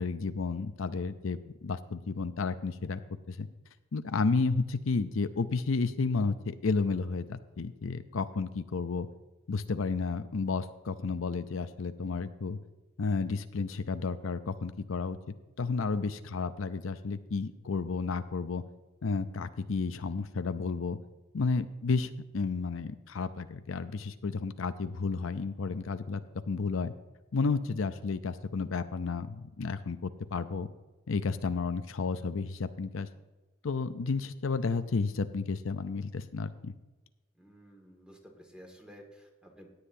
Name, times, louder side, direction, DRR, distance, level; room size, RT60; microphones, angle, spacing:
voice 1, 0.0-3.0 3.3-3.5 3.9-9.1 9.5-12.6 13.0-18.6 19.0-21.0 21.3-26.2 26.5-26.9 27.3-30.7 31.1-33.1 33.6-36.7, left 4 dB, 85° left, 10 dB, 0.6 m, -32 dB
voice 2, 37.3-39.7, equal, 5° right, 2 dB, 2.1 m, -53 dB
16.5 x 9.7 x 2.7 m, 1.1 s
head